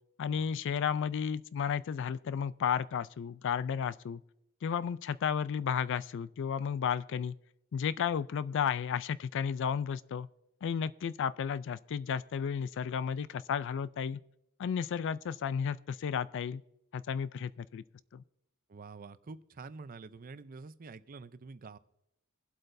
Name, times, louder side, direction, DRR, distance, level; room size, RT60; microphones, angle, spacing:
voice 1, 0.2-4.2 4.6-7.3 7.7-10.3 10.6-14.2 14.6-16.6 16.9-17.8 18.1-18.2, left 7 dB, 55° left, 17 dB, 0.3 m, -33 dB
voice 2, 18.7-21.8, right 4 dB, 40° right, 13 dB, 0.5 m, -47 dB
23.0 x 7.9 x 2.6 m, 0.86 s
head